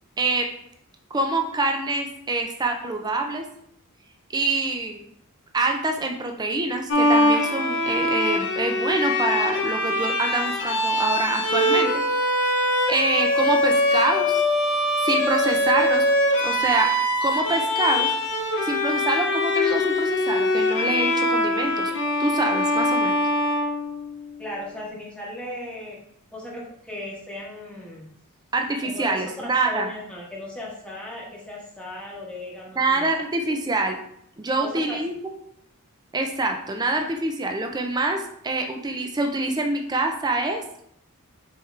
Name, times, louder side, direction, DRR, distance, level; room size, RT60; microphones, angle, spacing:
voice 1, 0.2-0.5 1.1-3.4 4.3-5.0 5.5-12.0 12.5-14.4 15.0-16.1 16.4-16.9 17.2-18.1 18.6-21.9 22.2-23.2 28.5-29.9 32.8-34.0 34.4-35.3 36.1-40.6, right 2 dB, 20° right, 3 dB, 0.4 m, -26 dB
Bowed string instrument, 6.9-24.3, left 1 dB, 55° left, 0.7 m, -23 dB
voice 2, 24.4-26.0 26.3-28.1 28.8-33.1 34.6-35.0, left 1 dB, 5° left, -5 dB, 1.2 m, -36 dB
4.5 x 3.5 x 3.2 m, 0.71 s
head